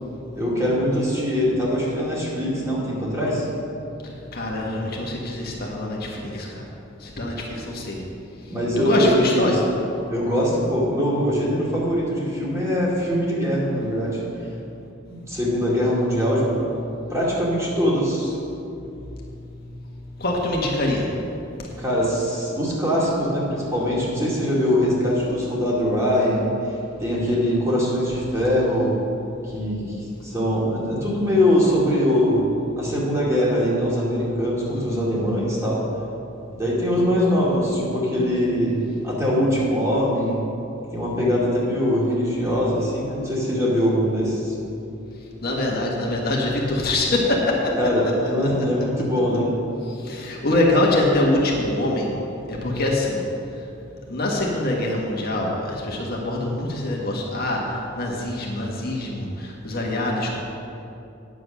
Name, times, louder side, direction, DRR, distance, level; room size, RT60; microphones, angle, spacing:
voice 1, 0.3-3.5 8.5-9.6 10.1-14.2 15.1-16.6 17.1-18.4 21.8-28.9 29.4-32.5 32.8-35.9 36.5-38.8 39.0-40.4 40.9-44.5 47.8-49.5, equal, 15° right, -6 dB, 2.4 m, -22 dB
voice 2, 4.3-6.6 7.0-8.0 8.8-9.6 20.2-21.1 34.7-35.1 45.4-47.7 48.0-48.1 50.0-52.1 52.5-53.2 54.1-60.4, left 1 dB, 50° left, -2 dB, 1.5 m, -24 dB
9.6 x 7.8 x 6.2 m, 2.7 s
head